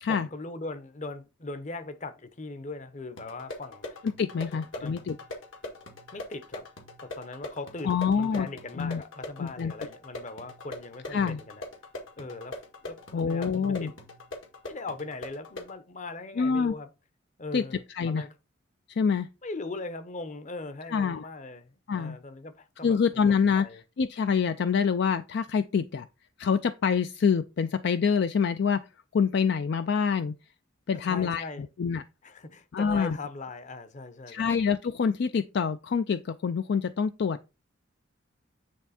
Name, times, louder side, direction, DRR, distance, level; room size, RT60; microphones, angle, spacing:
voice 1, 0.1-4.0 4.5-5.0 6.1-6.7 7.0-11.6 12.2-14.0 14.7-16.9 17.4-18.3 19.4-23.0 23.3-23.8 30.9-31.7 32.2-34.6, left 3 dB, 40° left, 0.8 m, -40 dB
sound 1, 3.2-15.8, left 1 dB, 70° left, 1.8 m, -42 dB
voice 2, 4.2-5.2 7.8-8.5 8.8-9.0 9.4-9.7 11.1-11.4 13.1-13.9 16.4-16.7 17.5-17.6 17.9-18.2 18.9-19.3 20.9-21.2 21.9-22.2 22.8-23.7 24.0-26.1 26.4-28.9 29.1-30.4 30.9-31.4 31.8-32.0 32.7-33.2 34.3-37.4, left 6 dB, 55° left, 0.4 m, -26 dB
9.4 x 3.5 x 4.1 m
head